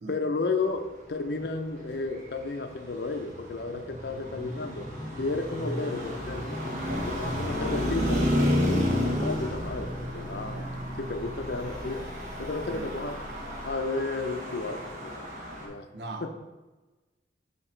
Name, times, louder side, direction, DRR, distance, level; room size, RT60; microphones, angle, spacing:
voice 1, 0.1-4.9 5.2-6.6 7.0-10.6 11.0-12.1 12.4-13.2 13.6-15.9 16.2-16.3, left 3 dB, 65° left, 7 dB, 0.6 m, -33 dB
Traffic noise roadway noise, 1.9-15.7, equal, 45° right, 1.2 m, -31 dB
Motor vehicle (road) / Engine, 6.8-13.7, equal, 30° left, 0.8 m, -46 dB
voice 2, 15.9-16.3, right 2 dB, 75° right, 3 dB, 0.8 m, -39 dB
8.0 x 2.9 x 4.4 m, 1.2 s
head